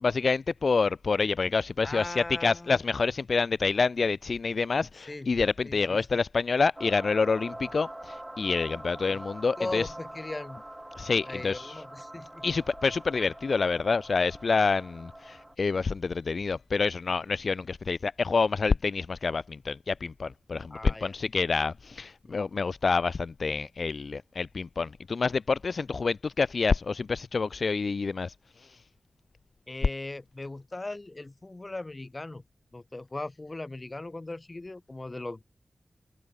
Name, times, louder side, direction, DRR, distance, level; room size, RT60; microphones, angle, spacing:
voice 1, 0.0-9.9 11.0-11.8 12.4-28.3, left 4 dB, 65° left, 0.6 m, -27 dB
voice 2, 1.8-2.8 5.1-5.3 5.6-6.2 9.1-9.2 9.6-10.6 11.2-12.4 20.7-21.1 22.2-22.4 29.7-32.4 32.7-35.4, left 2 dB, 30° left, 5.2 m, -39 dB
sound 1, 6.8-15.6, right 1 dB, 15° right, 1.1 m, -44 dB
open air
wide cardioid pair, 85°, 0 cm